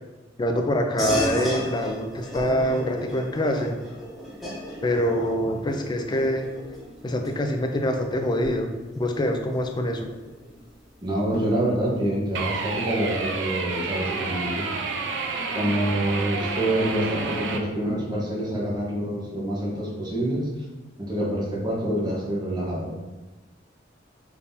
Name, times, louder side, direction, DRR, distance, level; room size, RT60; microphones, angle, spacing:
voice 1, 0.4-3.8 4.8-6.5 7.0-8.7 9.0-10.1, equal, 25° left, 4 dB, 0.4 m, -25 dB
sound 1, 1.0-10.8, equal, ahead, 1.1 m, -35 dB
voice 2, 11.0-14.7 15.5-20.5 21.0-23.0, right 1 dB, 25° right, -5 dB, 1.0 m, -26 dB
sound 2, 12.3-17.6, right 4 dB, 75° right, 0.5 m, -29 dB
4.1 x 3.5 x 2.7 m, 1.1 s
head